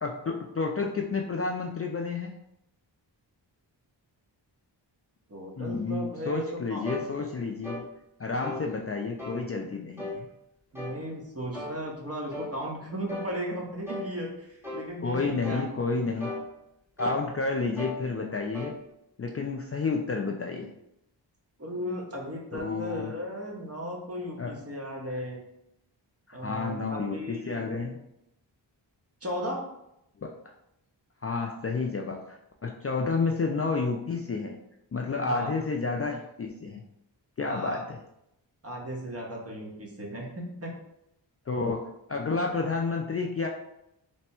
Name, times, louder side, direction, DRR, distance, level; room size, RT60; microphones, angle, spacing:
voice 1, 0.0-2.3 5.6-7.8 8.2-10.3 15.0-16.4 17.0-18.8 19.2-20.7 22.5-23.1 24.4-24.5 26.3-28.0 30.2-30.3 31.2-34.6 34.9-36.8 37.4-38.0 41.5-43.5, left 4 dB, 35° left, 1 dB, 0.4 m, -30 dB
voice 2, 5.3-6.8 8.5-8.6 10.7-15.7 16.1-16.4 21.6-25.4 26.3-27.6 29.2-29.6 35.3-35.5 37.4-37.8 38.6-40.7, equal, 30° right, -1 dB, 1.0 m, -36 dB
sound 1, 6.9-7.1 7.6-7.9 8.4-8.7 9.2-9.4 10.0-10.2 10.8-11.0 11.5-11.8 12.3-12.5 13.1-13.3 13.9-14.1 14.6-14.9 15.4-15.7 16.2-16.5 17.0-17.3 17.8-18.0 18.5-18.8, left 2 dB, 5° right, 0.8 m, -36 dB
3.4 x 2.1 x 4.3 m, 0.81 s
wide cardioid pair, 60°, 45 cm